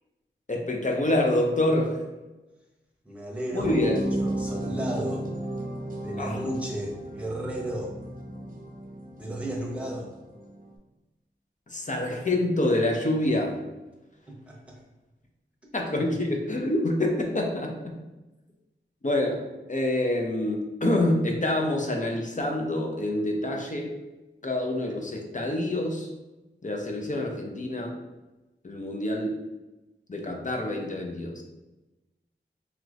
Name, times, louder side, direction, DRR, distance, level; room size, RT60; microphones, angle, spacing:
voice 1, 0.5-2.0 3.5-4.0 6.2-6.5 11.7-13.6 15.7-17.9 19.0-19.4 19.7-23.9 24.4-26.1 26.6-28.0 28.6-29.4 30.1-31.4, left 1 dB, 40° left, 1 dB, 0.6 m, -26 dB
voice 2, 3.0-3.9 4.2-5.3 6.0-7.9 9.2-10.1 14.3-14.8, right 1 dB, 5° right, -3 dB, 0.9 m, -33 dB
sound 1, 3.6-10.7, right 1 dB, 45° right, 0.6 m, -34 dB
3.0 x 2.9 x 2.5 m, 1.0 s
wide cardioid pair, 45°, 20 cm